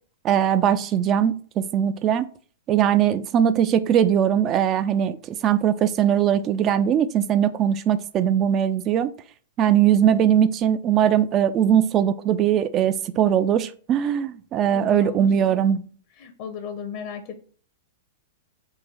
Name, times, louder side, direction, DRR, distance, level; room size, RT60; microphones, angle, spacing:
voice 1, 0.2-2.3 2.7-9.1 9.6-15.8, right 9 dB, 30° right, 0.3 m, -20 dB
voice 2, 14.7-15.3 16.2-17.4, left 6 dB, 50° left, 0.7 m, -35 dB
3.8 x 2.5 x 4.1 m
hypercardioid pair, 110°, 0 cm